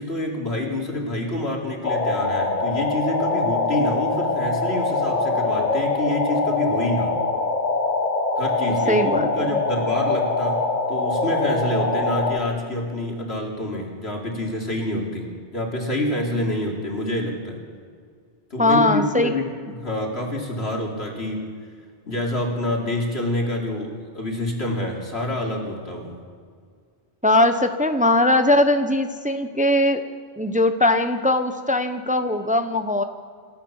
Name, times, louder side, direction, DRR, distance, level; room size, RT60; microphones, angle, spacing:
voice 1, 0.0-7.2 8.4-10.6 10.9-17.6 18.5-21.5 22.1-26.1, left 1 dB, 80° left, -1 dB, 3.8 m, -27 dB
sound 1, 1.8-12.4, left 3 dB, 45° left, 1.5 m, -23 dB
voice 2, 8.9-9.5 18.6-19.3 27.2-30.0 30.4-33.0, left 1 dB, 10° right, 8 dB, 0.9 m, -20 dB
28.0 x 13.5 x 7.2 m, 2.1 s
omnidirectional pair, 1.0 m